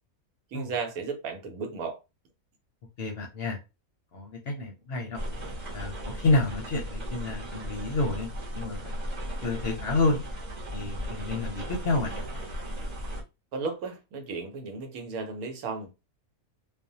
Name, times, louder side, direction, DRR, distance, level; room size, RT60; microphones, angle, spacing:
voice 1, 0.5-2.0 13.5-16.0, right 4 dB, 80° right, 1.2 m, -34 dB
voice 2, 3.0-3.6 4.1-5.2 5.7-8.3 8.5-9.1 9.4-10.2 10.7-12.2, left 3 dB, 55° left, 0.7 m, -29 dB
sound 1, 5.1-13.2, equal, 35° right, 0.9 m, -36 dB
2.6 x 2.1 x 2.6 m
omnidirectional pair, 1.5 m